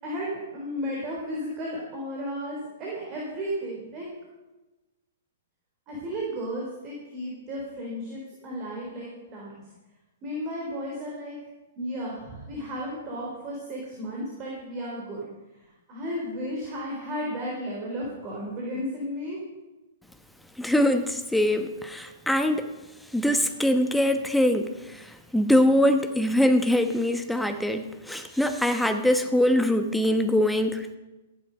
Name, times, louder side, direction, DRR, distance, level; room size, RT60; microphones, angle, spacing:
voice 1, 0.0-4.1 5.9-9.5 10.2-11.4 11.8-15.3 15.9-19.4, equal, 30° right, -3 dB, 4.1 m, -34 dB
voice 2, 20.6-22.7 23.1-25.1 25.3-31.0, left 1 dB, ahead, 7 dB, 1.0 m, -23 dB
15.0 x 10.5 x 5.4 m, 1.1 s
figure-of-eight pair, 115°, 0 cm